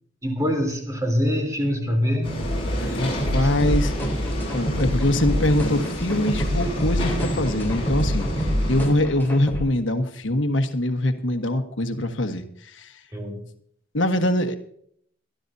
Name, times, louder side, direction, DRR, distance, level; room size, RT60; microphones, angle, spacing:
voice 1, 0.2-2.5 3.4-3.5 13.1-13.5, equal, 20° right, 2 dB, 3.5 m, -24 dB
sound 1, 2.2-8.9, equal, 30° left, 7.5 m, -29 dB
voice 2, 2.8-4.2 4.5-13.0 13.9-14.6, left 1 dB, 85° left, 7 dB, 1.4 m, -24 dB
sound 2, 3.2-9.6, equal, 10° left, 4.0 m, -26 dB
23.5 x 12.5 x 2.7 m, 0.65 s
head